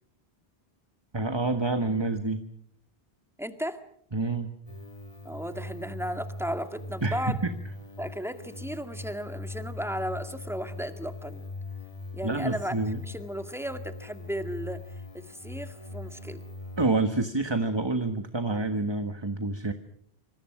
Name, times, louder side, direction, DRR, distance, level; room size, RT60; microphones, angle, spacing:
voice 1, 1.1-2.4 4.1-4.5 7.0-7.5 12.2-13.0 16.8-19.7, right 3 dB, 25° right, 8 dB, 1.5 m, -28 dB
voice 2, 3.4-3.8 5.2-7.4 8.0-11.4 12.1-12.8 13.0-14.8 15.1-16.4, equal, ahead, 7 dB, 2.0 m, -35 dB
sound 1, 4.7-16.9, left 2 dB, 35° left, 2.3 m, -41 dB
27.0 x 26.0 x 6.1 m, 0.66 s
omnidirectional pair, 1.0 m